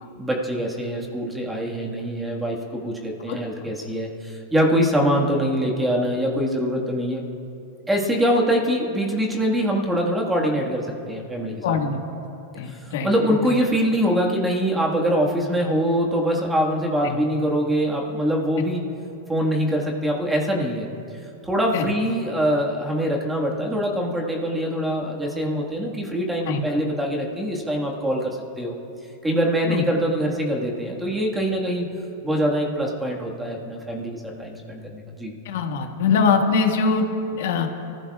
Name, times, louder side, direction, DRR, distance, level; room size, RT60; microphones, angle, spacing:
voice 1, 0.2-7.2 7.9-11.8 12.7-18.9 19.3-20.9 21.4-28.7 29.2-31.8 32.2-35.3, equal, 5° right, -2 dB, 1.6 m, -24 dB
voice 2, 11.6-12.0 12.5-13.1 17.0-17.2 21.7-21.8 26.5-26.6 29.7-29.8 35.4-37.7, left 5 dB, 70° left, 3 dB, 1.6 m, -22 dB
30.0 x 15.0 x 2.4 m, 2.8 s
supercardioid pair, 160°, 0 cm